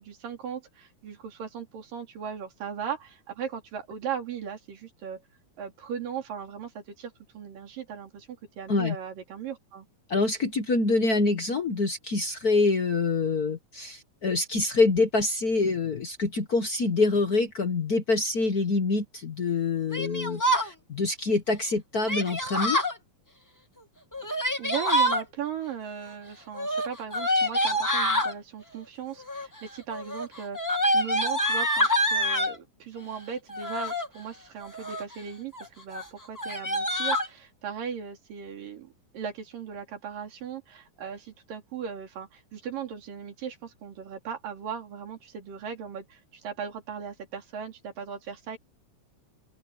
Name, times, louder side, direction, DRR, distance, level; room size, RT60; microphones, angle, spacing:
voice 1, 0.0-5.2 5.6-9.9 24.3-30.6 30.8-48.6, right 7 dB, 80° right, 4.9 m, -38 dB
voice 2, 10.1-22.8, left 3 dB, 70° left, 0.8 m, -26 dB
Yell, 19.9-20.7 22.1-22.9 24.1-25.2 26.5-28.3 29.2-29.6 29.9-32.6 33.5-34.1 34.6-35.1 35.5-35.7 35.9-36.0 36.4-37.3, equal, 5° left, 1.5 m, -26 dB
open air
omnidirectional pair, 3.9 m